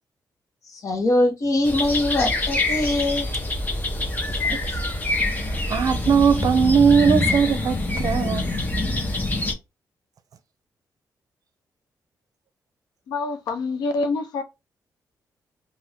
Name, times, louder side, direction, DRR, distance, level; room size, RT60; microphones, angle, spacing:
voice 1, 0.8-3.3, left 1 dB, 55° left, 1.2 m, -22 dB
sound 1, 1.6-9.5, left 2 dB, 25° left, 0.8 m, -25 dB
voice 2, 5.7-8.5, right 6 dB, 60° right, 0.6 m, -19 dB
voice 3, 13.1-14.4, left 3 dB, 90° left, 0.7 m, -26 dB
2.7 x 2.6 x 3.4 m
cardioid pair, 85°, 7 cm